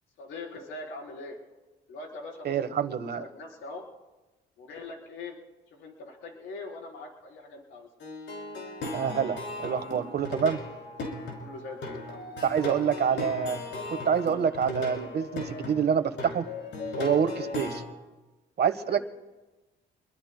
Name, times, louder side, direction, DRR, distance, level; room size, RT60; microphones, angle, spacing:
voice 1, 0.2-1.4 1.9-2.8 3.2-3.8 4.6-5.4 5.7-7.9 11.4-12.6 18.8-19.0, left 3 dB, 85° left, -1 dB, 4.0 m, -42 dB
voice 2, 2.4-3.2 8.9-10.6 12.4-13.6 13.9-16.5 17.0-17.8 18.6-19.0, right 7 dB, 55° right, 12 dB, 1.3 m, -27 dB
Plucked string instrument, 8.0-17.8, left 2 dB, 70° left, 5.7 m, -37 dB
28.0 x 22.0 x 2.2 m, 1.1 s
cardioid pair, 90°, 20 cm